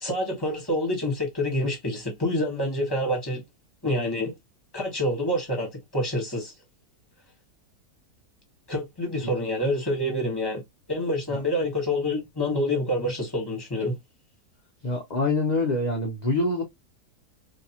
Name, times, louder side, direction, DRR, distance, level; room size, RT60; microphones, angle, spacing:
voice 1, 0.0-3.4 3.8-4.3 4.7-6.5 8.7-10.6 10.9-14.0, left 1 dB, 15° left, 1.2 m, -27 dB
voice 2, 14.8-16.6, left 2 dB, 45° left, 0.6 m, -25 dB
3.4 x 2.8 x 2.8 m
omnidirectional pair, 1.7 m